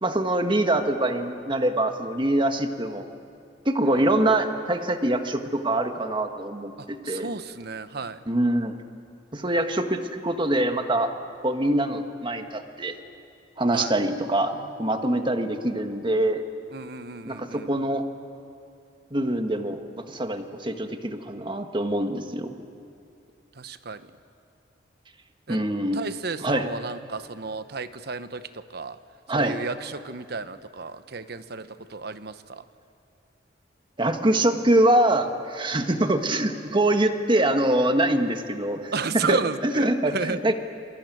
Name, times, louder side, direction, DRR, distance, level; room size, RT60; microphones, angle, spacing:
voice 1, 0.0-3.0 3.6-7.3 8.3-8.8 9.3-11.1 11.4-12.9 13.6-16.4 17.2-18.0 19.1-22.6 25.5-26.0 26.4-26.7 29.3-29.6 34.0-39.4 39.6-40.5, right 1 dB, 25° right, 6 dB, 1.5 m, -24 dB
voice 2, 6.8-8.2 13.7-13.9 16.7-17.7 23.6-24.1 25.5-25.6 25.9-29.0 29.3-32.6 38.9-39.9 40.1-40.5, right 4 dB, 60° right, 12 dB, 1.0 m, -32 dB
28.0 x 22.0 x 9.3 m, 2.5 s
head